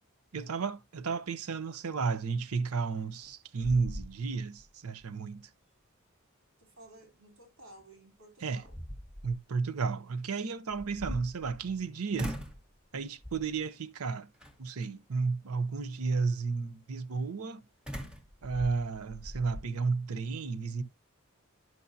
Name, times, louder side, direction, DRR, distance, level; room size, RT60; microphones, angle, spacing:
voice 1, 0.3-5.5 8.4-8.6 9.2-12.4 12.9-14.3 14.6-17.6 18.4-20.8, right 4 dB, 90° right, 0.7 m, -33 dB
sound 1, 3.0-3.3 3.6-4.6 5.0-5.1 7.8-7.9 8.4-9.4 10.7-11.8 12.2-12.7 13.2-13.6 14.4-14.9 17.9-19.7, equal, 5° right, 1.3 m, -41 dB
voice 2, 6.6-8.8, right 1 dB, 60° right, 3.3 m, -55 dB
11.0 x 6.3 x 2.7 m
head